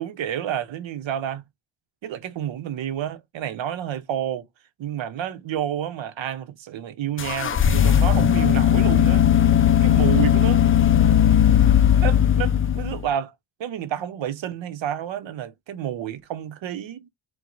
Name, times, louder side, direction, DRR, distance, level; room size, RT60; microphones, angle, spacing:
voice 1, 0.0-1.4 2.0-4.5 4.8-9.3 9.8-10.7 12.0-13.3 13.6-17.1, right 10 dB, 75° right, 0.9 m, -29 dB
sound 1, 7.2-13.1, left 10 dB, 30° left, 0.5 m, -17 dB
4.6 x 2.3 x 3.8 m
wide cardioid pair, 130°, 46 cm